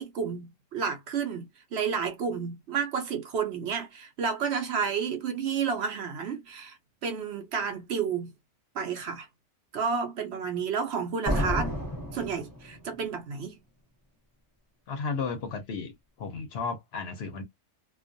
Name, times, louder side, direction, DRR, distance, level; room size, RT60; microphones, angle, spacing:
voice 1, 0.0-8.3 8.7-9.3 9.7-11.8 12.1-13.6, right 6 dB, 65° right, 0.7 m, -31 dB
sound 1, 11.3-13.1, equal, 20° left, 0.6 m, -30 dB
voice 2, 14.9-17.4, left 5 dB, 60° left, 0.8 m, -34 dB
2.3 x 2.3 x 2.5 m
omnidirectional pair, 1.3 m